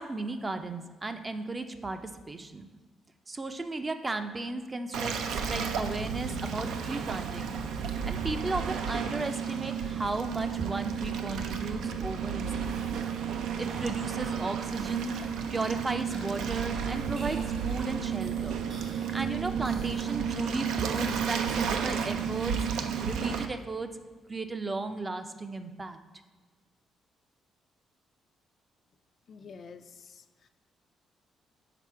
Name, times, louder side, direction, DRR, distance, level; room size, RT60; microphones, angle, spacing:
voice 1, 0.0-2.0 2.3-2.7 3.3-5.2 5.5-7.5 8.1-15.2 15.5-18.6 18.9-22.6 23.0-23.9 24.3-26.0, right 2 dB, 25° right, 8 dB, 0.5 m, -35 dB
Waves surf, 4.9-23.5, right 7 dB, 85° right, 0.4 m, -32 dB
sound 1, 12.0-21.9, right 2 dB, 65° right, 1.8 m, -53 dB
voice 2, 29.3-30.5, left 5 dB, 55° left, 9 dB, 0.3 m, -49 dB
5.9 x 4.2 x 4.6 m, 1.4 s
cardioid pair, 90°, 0 cm